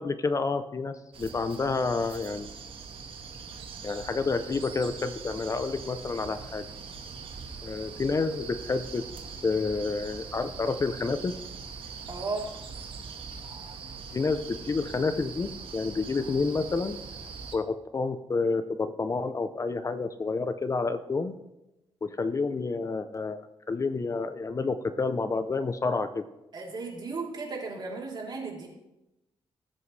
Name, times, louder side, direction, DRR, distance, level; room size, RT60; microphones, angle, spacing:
voice 1, 0.0-2.5 3.8-6.7 7.6-9.0 9.4-11.3 14.1-17.0 17.5-21.4 22.0-26.3, left 4 dB, 35° left, 11 dB, 0.6 m, -29 dB
sound 1, 1.1-17.6, right 5 dB, 70° right, 1.5 m, -42 dB
voice 2, 12.1-12.6 26.5-28.7, right 3 dB, 50° right, -2 dB, 3.5 m, -35 dB
19.5 x 8.0 x 3.3 m, 0.94 s
cardioid pair, 100°, 10 cm